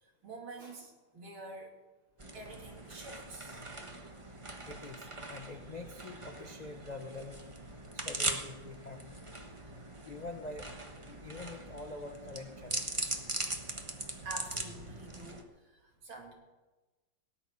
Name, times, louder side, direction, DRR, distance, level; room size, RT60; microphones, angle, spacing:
voice 1, 0.0-1.8 2.3-3.7 14.2-16.3, right 2 dB, 75° right, 1 dB, 3.3 m, -47 dB
sound 1, 2.2-15.4, right 2 dB, 20° right, 0.9 m, -41 dB
voice 2, 4.5-7.5 7.9-9.3 10.0-10.7 11.0-13.1, left 2 dB, 80° left, 5 dB, 0.3 m, -45 dB
18.0 x 7.0 x 9.7 m, 1.2 s
omnidirectional pair, 2.3 m